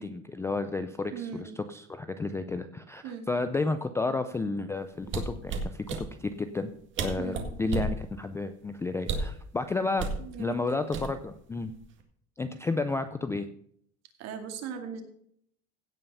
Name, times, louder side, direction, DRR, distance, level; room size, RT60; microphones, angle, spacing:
voice 1, 0.0-6.7 7.0-10.1 10.4-11.7 12.4-13.5, left 3 dB, 10° left, 9 dB, 0.3 m, -32 dB
voice 2, 1.1-1.6 3.0-3.3 7.2-7.5 10.2-10.8 14.2-15.0, right 7 dB, 55° right, 5 dB, 2.4 m, -39 dB
sound 1, 5.0-6.0 6.7-6.8 7.0-8.0 9.0-9.4 10.0-10.2 10.9-11.4 11.7-12.0, right 4 dB, 35° right, 1.9 m, -31 dB
16.5 x 5.5 x 5.5 m, 0.66 s
cardioid pair, 155°, 32 cm